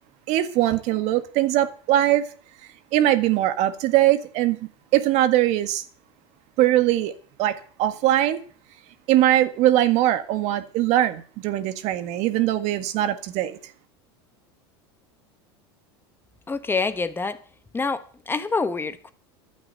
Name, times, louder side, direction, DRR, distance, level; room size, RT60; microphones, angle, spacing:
voice 1, 0.3-2.3 2.9-4.6 4.9-5.8 6.6-7.1 7.4-8.4 9.1-13.6, right 13 dB, 60° right, 1.7 m, -21 dB
voice 2, 16.5-17.4 17.7-19.1, left 4 dB, 15° left, 1.1 m, -26 dB
12.0 x 8.6 x 8.2 m
hypercardioid pair, 100°, 13 cm